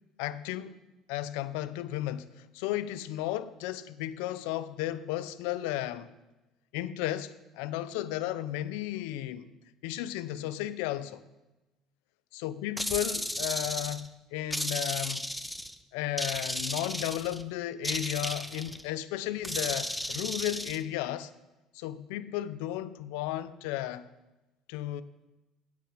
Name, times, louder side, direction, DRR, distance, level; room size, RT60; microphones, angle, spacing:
voice 1, 0.2-0.8 1.1-6.1 6.7-9.5 9.8-11.2 12.4-15.3 15.9-21.3 21.7-24.0 24.7-25.0, left 13 dB, 85° left, 0.5 m, -34 dB
sound 1, 12.8-14.1 14.5-15.7 16.2-17.4 17.8-18.8 19.4-20.8, equal, ahead, 0.5 m, -34 dB
9.6 x 8.8 x 5.0 m
supercardioid pair, 95°, 0 cm